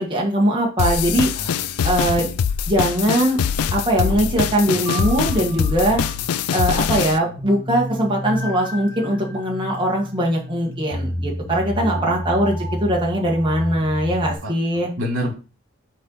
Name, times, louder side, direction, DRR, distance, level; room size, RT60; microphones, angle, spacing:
voice 1, 0.0-1.3 1.8-2.3 2.7-3.4 3.7-6.0 6.5-14.9, right 1 dB, 20° right, -1 dB, 1.4 m, -21 dB
sound 1, 0.8-7.2, left 7 dB, 85° left, 0.4 m, -23 dB
voice 2, 1.3-2.4 11.5-12.2 14.4-15.3, equal, 65° right, 0 dB, 2.9 m, -31 dB
sound 2, 4.0-14.4, equal, 20° left, 1.3 m, -31 dB
6.5 x 4.4 x 4.0 m, 0.34 s
head